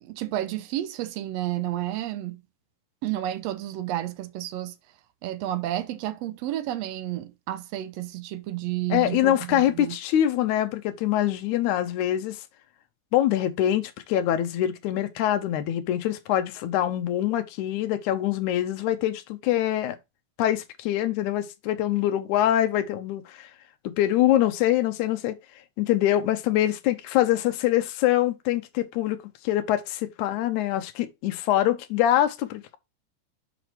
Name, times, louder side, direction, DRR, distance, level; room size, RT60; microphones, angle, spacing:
voice 1, 0.0-2.4 3.0-4.7 5.2-10.0, right 13 dB, 75° right, 1.6 m, -31 dB
voice 2, 8.9-12.4 13.1-20.0 20.4-23.5 23.8-25.4 25.8-32.8, left 12 dB, 80° left, 2.0 m, -24 dB
7.6 x 5.0 x 3.2 m
omnidirectional pair, 3.6 m